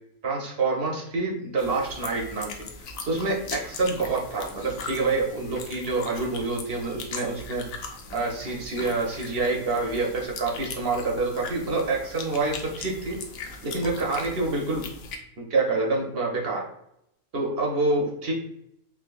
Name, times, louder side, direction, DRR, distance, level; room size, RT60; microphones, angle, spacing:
voice 1, 0.2-7.6 8.1-13.2 13.6-14.8 15.5-16.6 17.3-18.3, right 3 dB, 55° right, -1 dB, 0.7 m, -27 dB
sound 1, 1.6-15.1, left 4 dB, 70° left, 0.9 m, -40 dB
3.5 x 2.8 x 2.4 m, 0.78 s
omnidirectional pair, 1.6 m